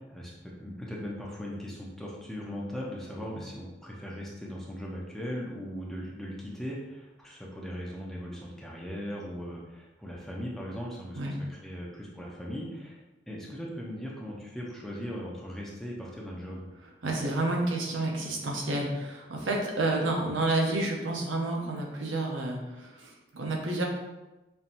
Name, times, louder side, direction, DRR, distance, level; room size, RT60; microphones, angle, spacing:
voice 1, 0.0-13.0 13.3-16.7 20.2-20.3, equal, ahead, -4 dB, 0.6 m, -39 dB
voice 2, 17.0-23.9, right 2 dB, 85° right, 0 dB, 0.8 m, -30 dB
5.4 x 2.8 x 2.6 m, 1.0 s
head